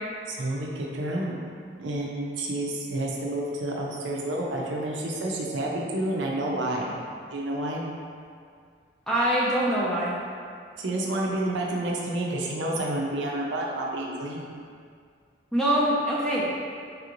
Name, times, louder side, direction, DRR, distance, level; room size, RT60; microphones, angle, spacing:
voice 1, 0.3-1.4 1.8-7.0 7.3-7.9 10.8-14.5, right 1 dB, 70° right, -3 dB, 0.5 m, -29 dB
voice 2, 9.1-10.1 15.5-16.5, right 1 dB, 5° left, -7 dB, 0.4 m, -24 dB
3.3 x 2.5 x 2.9 m, 2.2 s
head